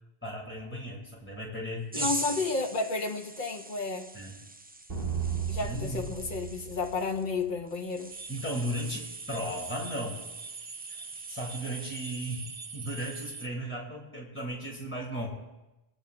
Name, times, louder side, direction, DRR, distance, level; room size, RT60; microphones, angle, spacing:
voice 1, 0.2-2.1 4.1-4.4 5.6-6.1 8.3-10.2 10.9-11.0 11.3-12.5 12.7-15.3, equal, 10° left, -4 dB, 6.9 m, -36 dB
voice 2, 1.9-4.1 5.5-8.1, left 3 dB, 50° left, 1 dB, 1.5 m, -32 dB
sound 1, 1.9-12.6 12.9-13.3, right 2 dB, 15° right, 0.3 m, -43 dB
sound 2, 4.9-7.6, right 7 dB, 60° right, 2.6 m, -35 dB
sound 3, 8.1-13.5, right 4 dB, 40° right, 0.7 m, -42 dB
29.0 x 19.5 x 2.5 m, 1.0 s
omnidirectional pair, 1.1 m